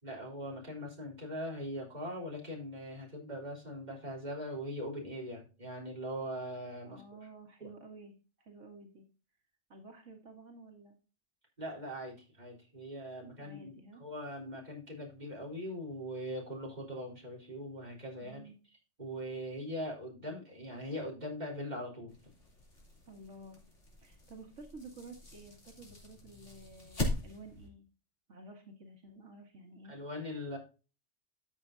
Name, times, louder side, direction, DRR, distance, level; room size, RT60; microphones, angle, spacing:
voice 1, 0.0-7.0 7.6-7.7 11.6-18.4 19.0-22.1 29.9-30.6, equal, 35° right, -2 dB, 4.0 m, -41 dB
voice 2, 6.9-9.0 9.7-10.9 13.1-14.0 18.1-18.6 23.1-23.6 24.0-27.9 28.3-29.9 30.3-30.6, right 2 dB, 85° right, 2 dB, 2.0 m, -52 dB
sound 1, 22.1-27.7, left 2 dB, 75° left, 3.7 m, -41 dB
13.0 x 7.6 x 2.7 m, 0.33 s
omnidirectional pair, 1.2 m